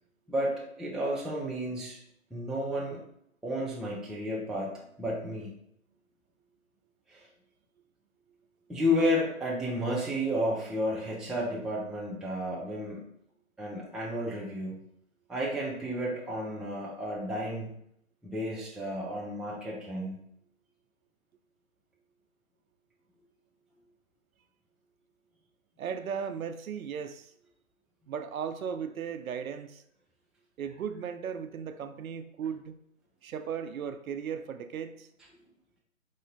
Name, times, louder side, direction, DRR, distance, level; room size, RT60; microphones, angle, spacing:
voice 1, 0.3-2.0 2.3-3.0 3.4-4.7 5.0-5.5 7.1-7.3 8.7-13.0 13.6-14.7 15.3-17.7 18.2-20.2, equal, ahead, -5 dB, 0.3 m, -32 dB
voice 2, 25.8-27.3 28.1-29.8 30.6-32.8 33.2-35.1, right 7 dB, 80° right, 9 dB, 0.5 m, -36 dB
3.7 x 2.1 x 3.8 m, 0.72 s
hypercardioid pair, 175°, 42 cm